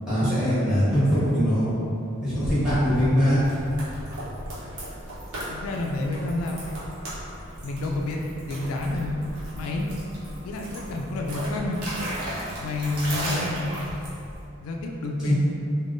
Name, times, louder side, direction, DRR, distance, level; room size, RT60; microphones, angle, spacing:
voice 1, 0.1-1.7 2.2-3.4 15.2-15.3, equal, 5° right, -13 dB, 1.1 m, -22 dB
sound 1, 2.4-14.4, equal, 90° right, 0.9 m, -35 dB
voice 2, 5.5-6.7 7.6-8.2 8.5-9.1 9.6-9.9 10.4-11.8 12.6-13.9 14.6-15.3, left 2 dB, 80° left, 1 dB, 0.3 m, -29 dB
3.5 x 2.1 x 2.5 m, 2.7 s
head